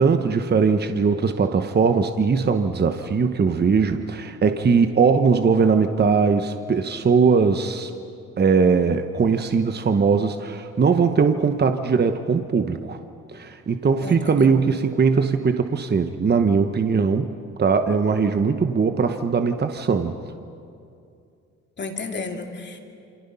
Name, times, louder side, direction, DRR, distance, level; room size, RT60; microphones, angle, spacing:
voice 1, 0.0-7.9 8.4-13.0 13.3-17.3 17.6-20.2, right 5 dB, 35° right, 7 dB, 1.1 m, -20 dB
voice 2, 14.0-14.6 21.8-22.8, left 3 dB, 35° left, 3 dB, 2.8 m, -32 dB
29.0 x 25.5 x 5.7 m, 2.5 s
cardioid pair, 90°, 30 cm